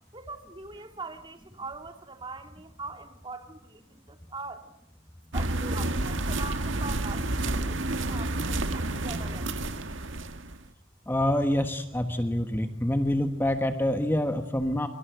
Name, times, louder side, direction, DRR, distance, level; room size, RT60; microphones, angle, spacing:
voice 1, 0.1-4.7 5.3-9.5, right 3 dB, 25° right, 2.5 m, -42 dB
sound 1, 5.3-10.6, right 2 dB, 70° right, 1.8 m, -30 dB
voice 2, 11.1-14.9, left 1 dB, 10° left, 1.3 m, -26 dB
26.0 x 24.0 x 8.0 m
head